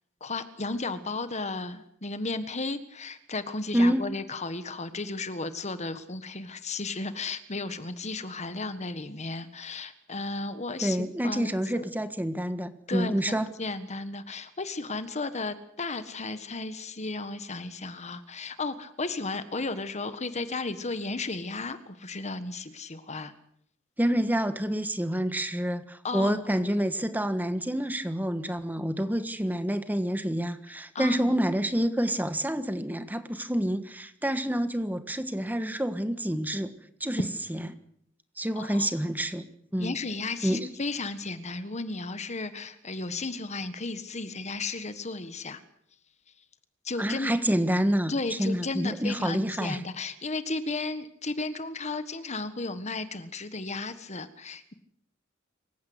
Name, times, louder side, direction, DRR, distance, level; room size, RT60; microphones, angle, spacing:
voice 1, 0.2-11.9 12.9-23.3 26.0-26.4 30.9-31.3 38.5-38.9 39.8-45.6 46.8-47.3 48.1-54.7, left 3 dB, 35° left, 12 dB, 1.5 m, -34 dB
voice 2, 3.7-4.1 10.8-13.5 24.0-36.7 37.0-37.2 37.5-37.6 38.4-39.4 39.7-39.9 40.4-40.7 47.0-49.8, equal, 10° right, 10 dB, 1.5 m, -28 dB
27.0 x 16.0 x 8.0 m, 0.68 s
head